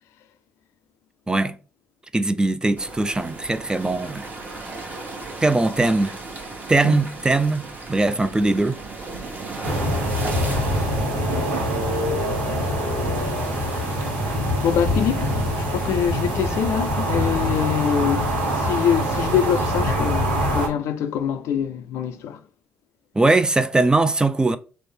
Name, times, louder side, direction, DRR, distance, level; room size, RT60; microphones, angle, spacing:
voice 1, 2.1-4.2 5.4-6.2 6.7-7.6 7.9-8.8 23.2-24.6, right 2 dB, 15° right, 0.3 m, -20 dB
sound 1, 2.8-19.9, right 3 dB, 35° right, 1.1 m, -36 dB
sound 2, 9.6-20.7, equal, 90° right, 0.7 m, -24 dB
voice 2, 14.6-15.3 15.7-18.3 18.6-22.4, left 8 dB, 70° left, 0.4 m, -24 dB
3.3 x 2.0 x 3.4 m
hypercardioid pair, 50°, 5 cm